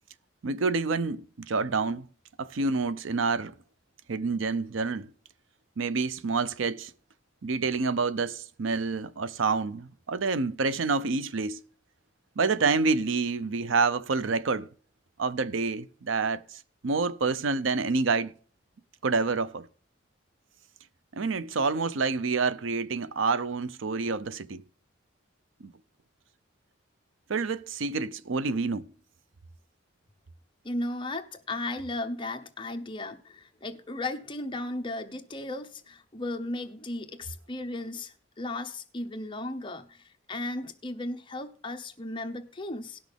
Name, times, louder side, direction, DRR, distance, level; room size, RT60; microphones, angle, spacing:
voice 1, 0.4-2.1 2.4-3.5 4.1-5.1 5.8-6.9 7.4-11.6 12.4-14.7 15.2-18.3 19.0-19.7 21.1-24.6 25.6-25.7 27.3-28.9, right 4 dB, 75° right, 0.6 m, -28 dB
voice 2, 30.6-43.0, left 2 dB, 25° left, 0.8 m, -35 dB
18.5 x 6.2 x 3.4 m
head